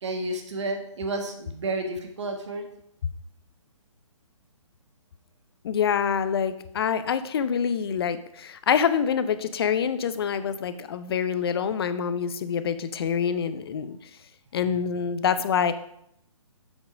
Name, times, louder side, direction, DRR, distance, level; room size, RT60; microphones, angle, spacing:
voice 1, 0.0-2.6, right 2 dB, 60° right, 4 dB, 1.5 m, -31 dB
voice 2, 5.6-14.0 14.5-15.7, left 7 dB, 45° left, 13 dB, 0.7 m, -26 dB
7.5 x 6.1 x 5.1 m, 0.74 s
figure-of-eight pair, 135°, 17 cm